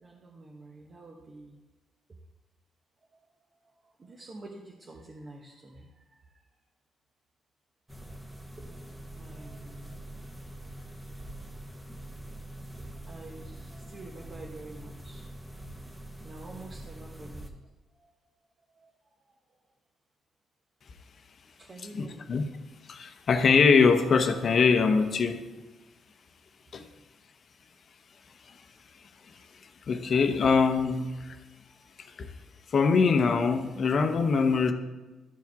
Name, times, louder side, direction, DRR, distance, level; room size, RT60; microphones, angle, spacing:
voice 1, 0.0-1.6 4.0-5.9 9.2-10.0 13.1-15.2 16.2-17.4 21.6-22.2, right 2 dB, 35° right, -1 dB, 1.0 m, -47 dB
sound 1, 7.9-17.5, right 1 dB, 5° right, 1.1 m, -44 dB
voice 2, 21.9-22.4 22.9-25.3 26.7-26.8 29.9-31.1 32.7-34.7, left 5 dB, 50° left, 7 dB, 0.8 m, -23 dB
13.0 x 4.6 x 3.5 m, 1.2 s
cardioid pair, 90°, 0 cm